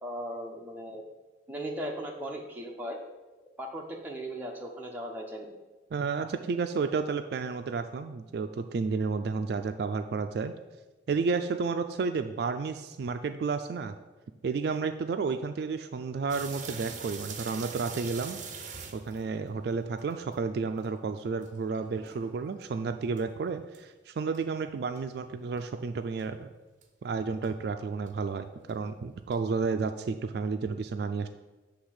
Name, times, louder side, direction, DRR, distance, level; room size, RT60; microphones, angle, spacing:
voice 1, 0.0-1.0 1.5-3.0 3.6-5.5, equal, 10° right, 0 dB, 0.8 m, -37 dB
voice 2, 5.9-10.5 11.1-13.9 14.4-18.4 18.9-26.5 27.0-31.3, right 4 dB, 60° right, 8 dB, 0.3 m, -31 dB
sound 1, 16.3-20.4 20.8-20.9 21.4-22.6 23.2-23.3 23.7-23.8 24.3-24.4 25.0-25.1 25.6-25.7 26.2-26.3 26.8-26.9 27.4-27.5 28.1-28.2 28.7-28.8 29.3-29.4, right 5 dB, 40° right, 0.7 m, -42 dB
7.9 x 3.4 x 6.4 m, 1.2 s
head